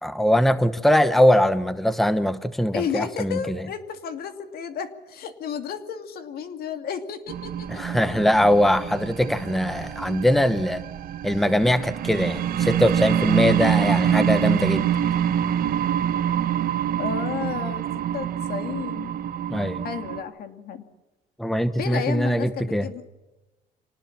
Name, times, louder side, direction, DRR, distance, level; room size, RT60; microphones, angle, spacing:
voice 1, 0.0-3.6 7.7-10.8 11.2-14.9 19.5-19.8 21.4-22.9, equal, ahead, 12 dB, 1.0 m, -21 dB
voice 2, 2.7-7.8 11.3-11.4 17.0-17.8 18.1-19.1 19.8-20.8 21.8-23.0, left 7 dB, 65° left, 8 dB, 2.6 m, -32 dB
sound 1, 7.3-20.2, right 9 dB, 60° right, 1.3 m, -26 dB
26.0 x 19.0 x 7.4 m, 1.1 s
cardioid pair, 110°, 17 cm